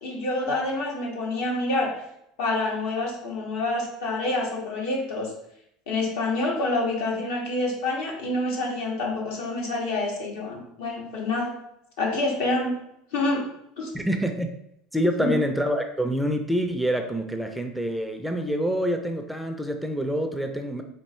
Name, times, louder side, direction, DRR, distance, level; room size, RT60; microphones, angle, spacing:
voice 1, 0.0-1.9 2.4-5.3 5.9-11.5 12.0-12.7 13.1-13.4 13.8-13.9 15.2-15.4, left 2 dB, 80° left, -2 dB, 1.6 m, -27 dB
voice 2, 13.9-14.5 14.9-20.8, equal, ahead, 4 dB, 0.4 m, -26 dB
4.4 x 2.7 x 4.3 m, 0.76 s
supercardioid pair, 130°, 0 cm